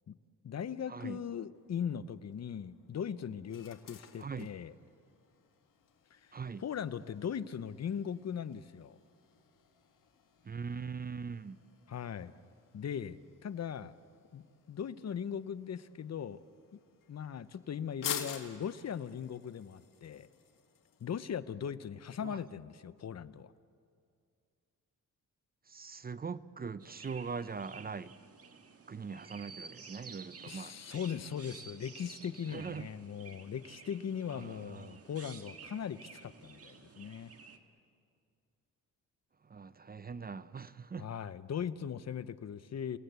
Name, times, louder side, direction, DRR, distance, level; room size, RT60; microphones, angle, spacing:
voice 1, 0.4-4.7 6.1-6.2 6.6-9.0 11.9-12.3 12.7-13.9 14.3-16.4 16.7-16.8 17.1-20.3 21.0-23.5 30.5-37.3 41.0-43.0, left 8 dB, 55° left, 0.8 m, -39 dB
sound 1, 1.5-21.1, left 8 dB, 75° left, 2.0 m, -50 dB
voice 2, 6.3-6.6 10.4-11.6 22.2-22.4 25.7-28.2 28.9-30.7 32.5-32.9 34.4-35.0 39.5-41.1, right 5 dB, 30° right, 0.6 m, -41 dB
Chirp tweet, 26.8-37.6, right 5 dB, 45° right, 1.8 m, -52 dB
29.5 x 18.0 x 8.1 m
cardioid pair, 85°, 32 cm